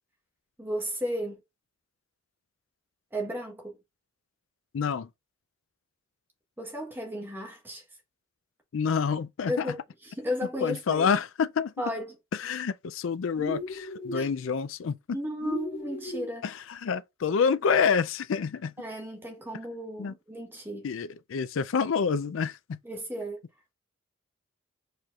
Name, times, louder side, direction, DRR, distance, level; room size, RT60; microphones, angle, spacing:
voice 1, 0.6-1.4 3.1-3.8 6.6-7.8 9.5-9.8 10.0-11.1 11.8-12.2 14.1-14.3 15.1-16.5 18.8-20.9 22.8-23.4, equal, 10° right, 1.2 m, -34 dB
voice 2, 4.7-5.1 8.7-9.7 10.6-11.7 12.4-15.0 16.4-18.7 20.0-20.1 20.8-22.8, left 6 dB, 65° left, 0.4 m, -28 dB
sound 1, 13.4-14.3 15.4-16.3, left 1 dB, 40° left, 2.0 m, -35 dB
4.8 x 4.4 x 2.4 m
head